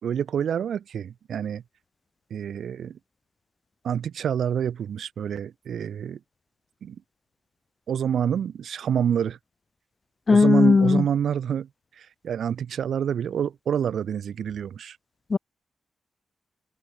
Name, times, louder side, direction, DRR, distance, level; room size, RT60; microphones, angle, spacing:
voice 1, 0.0-1.6 2.3-3.0 3.8-6.2 6.8-7.0 7.9-9.4 10.3-11.7 12.0-15.0, right 8 dB, 80° right, 2.1 m, -27 dB
voice 2, 10.3-11.0 15.3-15.4, left 4 dB, 45° left, 0.7 m, -17 dB
open air
cardioid pair, 65°, 0 cm